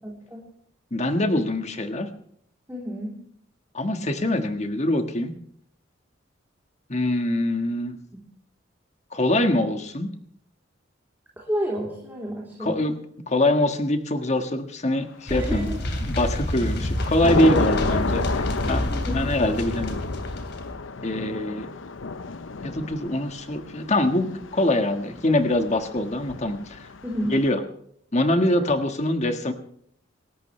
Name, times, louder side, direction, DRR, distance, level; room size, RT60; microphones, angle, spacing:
voice 1, 0.0-0.4 2.7-3.1 11.4-12.9 15.3-15.8 17.5-17.6 18.9-19.2 27.0-27.4, equal, 10° right, -4 dB, 3.5 m, -30 dB
voice 2, 0.9-2.1 3.7-5.3 6.9-8.0 9.1-10.1 12.6-12.9 13.3-15.7 16.0-20.0 21.0-21.7 22.6-26.9 27.3-27.6 28.1-29.5, left 1 dB, 35° left, 7 dB, 1.5 m, -24 dB
sound 1, 15.3-20.7, left 1 dB, 60° left, 3.0 m, -28 dB
Thunder / Rain, 15.4-15.9 16.4-27.5, left 4 dB, 80° left, 0.8 m, -32 dB
27.5 x 13.5 x 3.3 m, 0.68 s
head